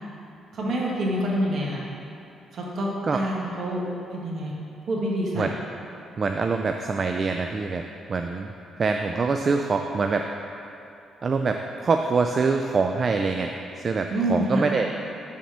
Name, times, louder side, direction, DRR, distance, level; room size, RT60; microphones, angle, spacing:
voice 1, 0.5-1.8 2.5-3.8 4.1-4.5 4.9-5.6 14.1-14.7, right 1 dB, 60° right, -3 dB, 1.4 m, -27 dB
voice 2, 6.2-7.8 8.1-8.5 8.8-10.3 11.2-13.5 13.8-14.9, right 4 dB, 40° right, 4 dB, 0.3 m, -24 dB
6.0 x 4.2 x 5.9 m, 2.7 s
cardioid pair, 90°, 0 cm